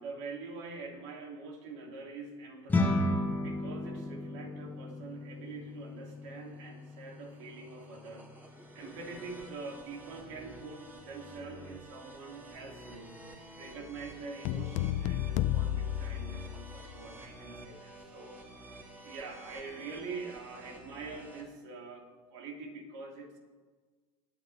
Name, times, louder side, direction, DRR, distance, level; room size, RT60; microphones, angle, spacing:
voice 1, 0.0-8.3 8.7-13.2 13.6-18.4 19.0-23.4, right 4 dB, 75° right, 1 dB, 2.9 m, -45 dB
sound 1, 2.7-12.2, left 2 dB, 10° left, 1.4 m, -36 dB
sound 2, 5.4-21.4, right 2 dB, 10° right, 2.7 m, -51 dB
sound 3, 14.4-17.0, left 13 dB, 55° left, 0.5 m, -32 dB
20.0 x 8.5 x 3.5 m, 1.4 s
supercardioid pair, 110°, 15 cm